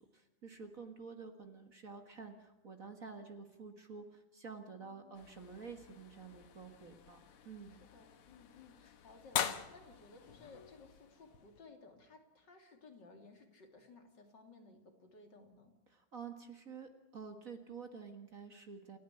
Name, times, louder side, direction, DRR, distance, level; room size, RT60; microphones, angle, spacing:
voice 1, 0.0-7.8 15.9-19.0, right 5 dB, 40° right, 6 dB, 1.9 m, -50 dB
voice 2, 4.8-5.2 7.9-15.7, left 3 dB, 55° left, 4 dB, 3.3 m, -59 dB
sound 1, 5.1-11.6, left 9 dB, 85° left, 2.2 m, -44 dB
29.0 x 10.0 x 9.9 m, 1.0 s
omnidirectional pair, 2.4 m